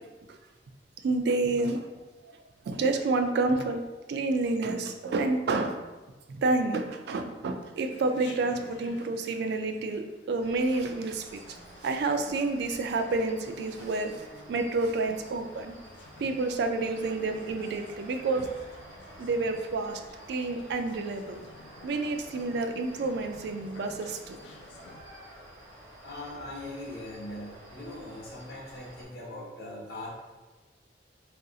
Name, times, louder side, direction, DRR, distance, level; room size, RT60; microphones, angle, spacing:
voice 1, 1.0-1.9 2.2-2.4 2.7-3.8 4.1-5.8 6.3-11.4 11.8-15.8 16.2-18.5 19.2-20.0 20.3-21.4 21.8-24.4, right 3 dB, 65° right, 6 dB, 0.3 m, -29 dB
Chatter, 7.9-25.0, left 3 dB, 75° left, 0.4 m, -51 dB
sound 1, 10.4-29.0, equal, 45° right, 1.0 m, -50 dB
voice 2, 26.0-30.1, left 1 dB, 60° left, -5 dB, 1.0 m, -40 dB
2.6 x 2.3 x 3.7 m, 1.2 s
head